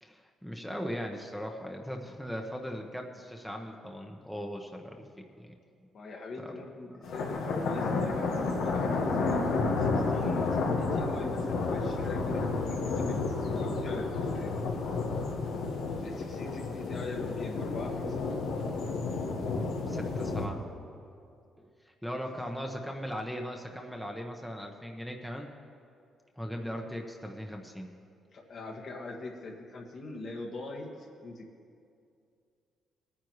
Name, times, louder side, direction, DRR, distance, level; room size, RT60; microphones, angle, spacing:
voice 1, 0.0-5.5 5.8-5.9 6.4-6.5 19.9-20.6 21.6-25.5 26.4-27.9, equal, 5° left, 2 dB, 1.0 m, -39 dB
voice 2, 5.9-9.5 9.8-13.5 13.8-14.6 16.0-18.2 22.5-22.6 28.3-31.5, left 2 dB, 55° left, -1 dB, 1.7 m, -42 dB
sound 1, 7.0-20.5, left 3 dB, 85° left, 1.4 m, -31 dB
20.0 x 9.7 x 3.2 m, 2.4 s
cardioid pair, 90°, 0 cm